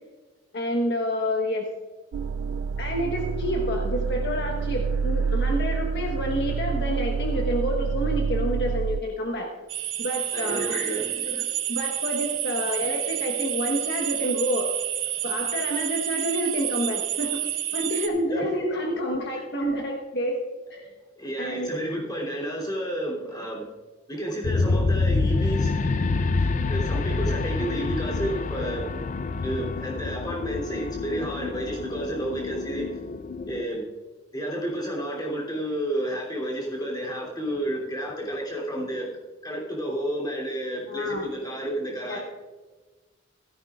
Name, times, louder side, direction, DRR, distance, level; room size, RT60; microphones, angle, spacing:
voice 1, 0.5-1.7 2.8-9.5 10.0-14.7 15.2-17.4 17.7-20.4 20.7-20.9 21.4-21.8 40.9-41.3 42.1-42.2, equal, 55° left, 1 dB, 1.3 m, -28 dB
sound 1, 2.1-9.0, right 5 dB, 90° right, 0.3 m, -27 dB
sound 2, 9.7-18.1, right 12 dB, 75° right, 1.1 m, -29 dB
voice 2, 10.3-11.1 18.3-18.5 19.3-19.4 21.2-23.7 24.1-26.0 26.3-28.8 29.4-32.9 33.5-33.9 34.3-39.1 39.4-42.2, right 1 dB, 20° left, -2 dB, 3.1 m, -31 dB
sound 3, 24.4-33.7, left 3 dB, 40° left, 0.4 m, -27 dB
16.0 x 14.0 x 2.5 m, 1.3 s
head